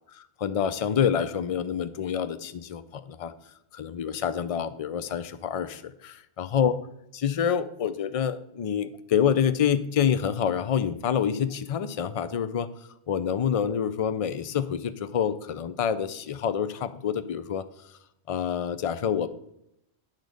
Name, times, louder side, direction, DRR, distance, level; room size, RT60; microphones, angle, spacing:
voice 1, 0.2-3.3 3.7-6.8 7.1-12.7 13.1-17.6 18.3-19.3, left 8 dB, 45° left, 12 dB, 0.5 m, -27 dB
10.5 x 4.0 x 6.4 m, 0.79 s
omnidirectional pair, 1.1 m